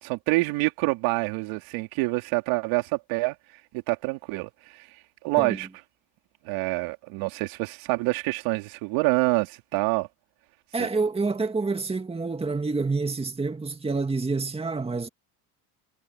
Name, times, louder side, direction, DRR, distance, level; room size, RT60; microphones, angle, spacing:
voice 1, 0.0-3.4 3.7-4.9 5.2-5.7 6.4-10.1 10.8-10.9, right 23 dB, 75° right, 3.5 m, -26 dB
voice 2, 10.7-15.1, right 3 dB, 10° right, 2.1 m, -28 dB
supercardioid pair, 115°, 48 cm